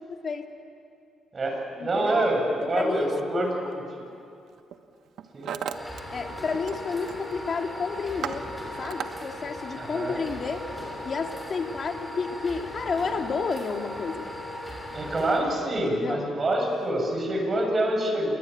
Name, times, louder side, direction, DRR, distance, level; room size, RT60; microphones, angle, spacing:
voice 1, 0.1-0.5 1.8-2.2 2.6-3.8 6.1-8.5 8.8-10.7 11.0-14.3 15.7-16.3, left 5 dB, 45° left, 4 dB, 2.5 m, -31 dB
voice 2, 1.3-3.8 5.3-5.5 9.8-10.2 14.9-18.3, right 1 dB, 35° right, 2 dB, 7.5 m, -26 dB
Hammer, 3.5-3.7 4.5-4.8 5.0-6.0 6.3-6.8 7.1-7.4 7.8-9.1, right 9 dB, 70° right, 1.3 m, -36 dB
sound 1, 5.7-15.4, left 1 dB, 5° left, 6.9 m, -38 dB
28.0 x 21.5 x 9.4 m, 2.6 s
cardioid pair, 90°, 0 cm